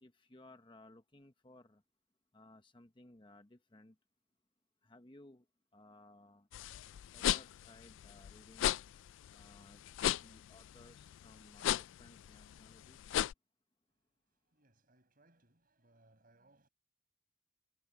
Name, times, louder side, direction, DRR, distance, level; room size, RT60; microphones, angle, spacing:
voice 1, 0.0-1.8 2.3-3.9 4.8-5.4 5.7-6.5 7.1-8.7 9.3-9.8 10.2-13.1, left 2 dB, 25° left, 1.0 m, -60 dB
sound 1, 6.5-13.3, left 11 dB, 80° left, 0.3 m, -36 dB
voice 2, 14.5-16.7, right 2 dB, 45° right, 6.9 m, -69 dB
head